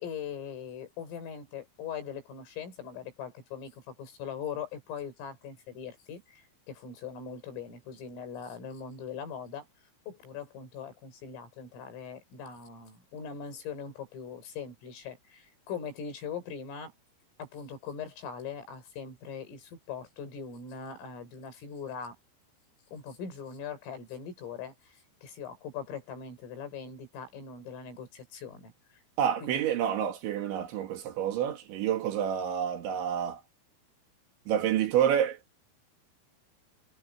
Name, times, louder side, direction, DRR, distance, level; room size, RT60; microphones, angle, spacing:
voice 1, 0.0-9.7 10.1-16.9 17.4-22.1 22.9-29.0 29.4-29.7, left 6 dB, 85° left, 8.2 m, -41 dB
voice 2, 29.2-33.4 34.5-35.4, right 9 dB, 70° right, 4.3 m, -28 dB
omnidirectional pair, 5.7 m